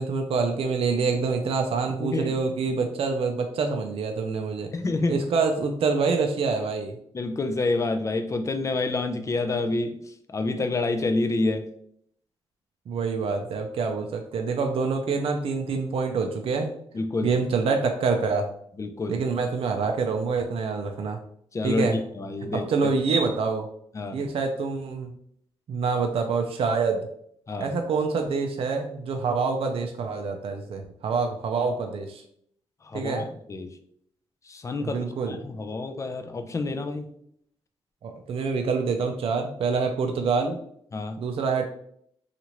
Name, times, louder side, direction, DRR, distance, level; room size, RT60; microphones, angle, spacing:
voice 1, 0.0-4.7 5.1-7.0 12.9-16.7 17.2-18.5 19.1-21.2 21.6-22.0 22.5-23.7 24.1-25.1 25.7-27.1 27.6-32.2 32.9-33.3 34.8-35.4 38.0-40.6 41.2-41.6, right 4 dB, 60° right, 4 dB, 0.4 m, -26 dB
voice 2, 2.0-2.3 4.7-5.2 7.1-10.0 10.3-11.7 16.9-17.3 18.8-19.2 21.5-21.9 22.2-22.9 23.9-24.2 27.5-27.7 32.9-33.7 34.5-37.1 40.9-41.2, left 3 dB, 30° left, 7 dB, 0.4 m, -28 dB
2.9 x 2.4 x 2.9 m, 0.68 s
cardioid pair, 90°, 11 cm